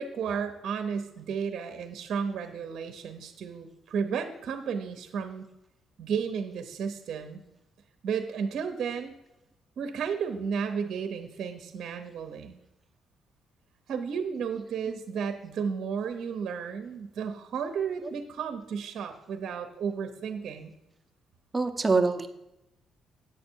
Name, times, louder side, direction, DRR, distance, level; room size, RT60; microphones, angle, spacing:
voice 1, 0.0-5.5 6.0-7.4 8.0-9.1 9.8-12.6 13.9-20.7, right 6 dB, 70° right, 7 dB, 0.7 m, -33 dB
voice 2, 21.5-22.3, right 4 dB, 20° right, 6 dB, 0.8 m, -25 dB
9.0 x 6.6 x 4.5 m, 0.89 s
cardioid pair, 90°, 0 cm